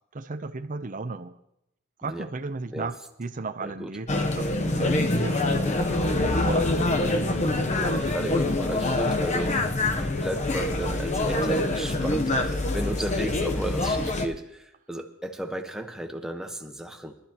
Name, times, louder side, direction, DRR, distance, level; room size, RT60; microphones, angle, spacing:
voice 1, 0.1-1.4 2.0-6.9, right 3 dB, 40° right, 9 dB, 0.6 m, -35 dB
voice 2, 3.6-4.0 7.5-17.2, right 1 dB, 5° right, 4 dB, 1.1 m, -34 dB
sound 1, 4.1-14.3, left 2 dB, 35° left, 0.9 m, -25 dB
23.0 x 12.5 x 3.0 m, 0.81 s
head